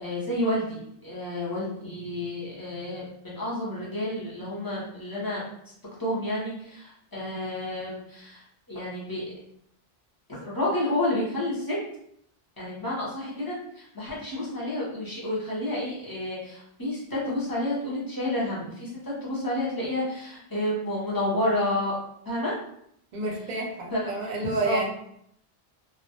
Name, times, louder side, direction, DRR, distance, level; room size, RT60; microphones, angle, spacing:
voice 1, 0.0-5.4 6.0-9.2 10.4-11.8 12.6-22.0 22.2-22.5 23.9-24.1 24.4-24.9, left 1 dB, 25° left, -6 dB, 0.6 m, -30 dB
voice 2, 23.1-24.9, right 2 dB, 55° right, 0 dB, 0.6 m, -30 dB
2.2 x 2.0 x 2.8 m, 0.71 s
omnidirectional pair, 1.0 m